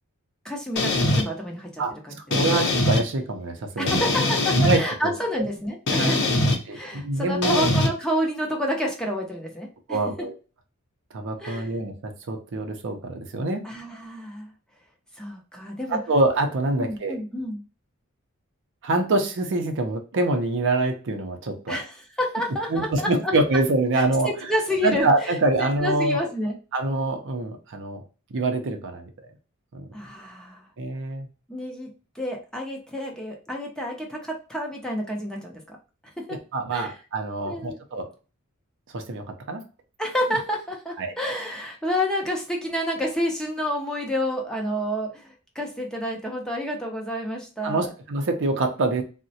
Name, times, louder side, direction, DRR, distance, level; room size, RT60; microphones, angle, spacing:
voice 1, 0.4-2.2 3.8-10.3 11.4-11.7 13.6-14.5 15.2-16.0 16.7-17.6 21.7-23.3 24.0-25.4 25.8-26.6 29.9-30.7 31.5-31.9 32.1-35.8 36.2-36.4 36.7-37.0 37.4-37.8 40.0-47.9, equal, 5° left, 0 dB, 0.6 m, -29 dB
sound 1, 0.8-1.2 2.3-3.0 3.9-4.8 5.9-6.6 7.4-7.9, left 1 dB, 55° left, 0.7 m, -22 dB
voice 2, 2.3-4.0 4.5-5.1 5.9-6.2 6.7-7.7 9.9-10.3 11.1-13.7 15.9-17.2 18.8-21.8 22.7-24.3 24.8-26.3 26.7-28.0 28.3-29.1 29.7-29.9 30.8-31.3 36.5-38.1 38.9-39.6 41.0-41.1 47.6-49.0, right 2 dB, 60° right, 5 dB, 0.6 m, -25 dB
3.7 x 2.1 x 2.7 m, 0.34 s
head